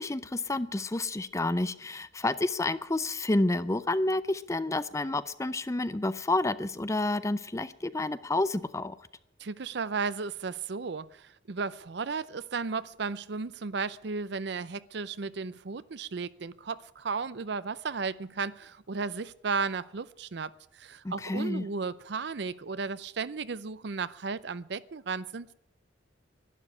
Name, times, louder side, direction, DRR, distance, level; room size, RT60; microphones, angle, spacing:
voice 1, 0.0-9.0 21.0-21.7, left 2 dB, 15° left, 0.5 m, -29 dB
voice 2, 9.4-25.5, right 4 dB, 60° right, 0.6 m, -34 dB
12.0 x 10.5 x 9.8 m
head